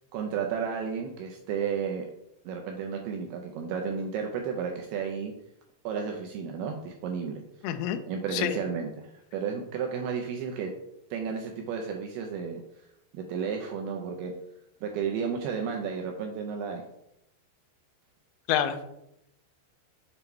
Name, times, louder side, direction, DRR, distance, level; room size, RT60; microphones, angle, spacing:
voice 1, 0.1-2.1 2.5-5.3 5.8-7.4 8.0-10.7 11.1-12.6 13.1-14.3 14.8-16.8, right 6 dB, 80° right, 2 dB, 2.3 m, -32 dB
voice 2, 7.6-8.0 8.3-8.6 18.5-18.9, left 10 dB, 85° left, 7 dB, 2.3 m, -27 dB
7.1 x 3.9 x 4.4 m, 0.81 s
omnidirectional pair, 5.0 m